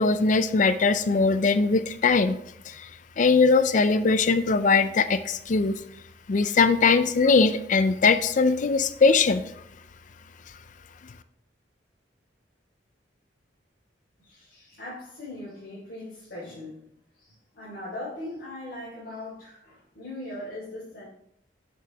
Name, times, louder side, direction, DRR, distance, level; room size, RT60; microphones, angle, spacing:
voice 1, 0.0-2.4 2.7-2.9 3.2-5.8 6.3-9.4, left 4 dB, 45° left, 12 dB, 0.4 m, -21 dB
voice 2, 14.2-16.9 17.1-21.0, left 1 dB, 65° left, -8 dB, 3.7 m, -40 dB
8.8 x 7.5 x 3.4 m, 0.73 s
head